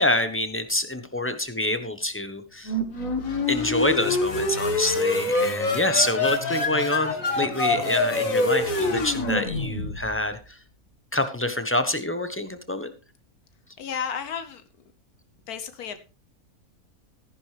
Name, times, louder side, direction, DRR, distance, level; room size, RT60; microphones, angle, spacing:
voice 1, 0.0-2.7 3.5-10.4 11.1-12.9, left 1 dB, 10° left, 9 dB, 1.0 m, -26 dB
sound 1, 2.7-10.3, left 2 dB, 65° left, 2.2 m, -25 dB
Keyboard (musical), 3.1-9.0, right 2 dB, 70° right, 3.1 m, -44 dB
voice 2, 13.8-14.6 15.5-16.0, left 7 dB, 85° left, 10 dB, 1.4 m, -32 dB
14.0 x 10.5 x 3.3 m, 0.32 s
omnidirectional pair, 1.6 m